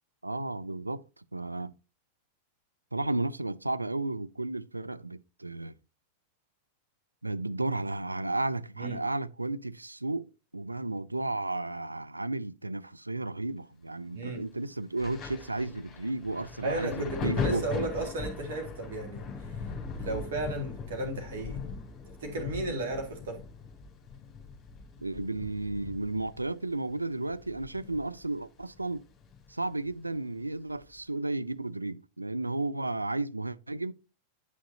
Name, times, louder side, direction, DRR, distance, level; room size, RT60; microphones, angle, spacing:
voice 1, 0.2-1.7 2.9-5.7 7.2-17.7 25.0-29.1 29.5-33.9, right 2 dB, 85° right, 0.3 m, -33 dB
Thunder, 15.0-28.3 28.6-29.9 30.8-30.9, left 5 dB, 20° left, 2.9 m, -39 dB
voice 2, 16.6-19.3 19.9-21.6 22.2-23.4, right 2 dB, 60° right, 2.1 m, -34 dB
9.2 x 6.3 x 2.7 m
figure-of-eight pair, 90°, 0 cm